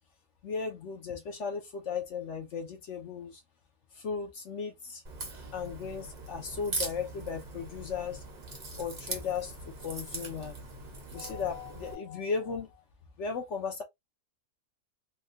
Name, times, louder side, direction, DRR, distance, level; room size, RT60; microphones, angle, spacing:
voice 1, 0.4-3.4 3.9-5.0 5.5-8.2 8.8-10.6 11.1-12.8 13.2-13.8, left 5 dB, 60° left, 0.9 m, -36 dB
Crack, 5.0-11.9, right 2 dB, 35° right, 0.9 m, -41 dB
3.5 x 2.3 x 2.6 m
omnidirectional pair, 1.6 m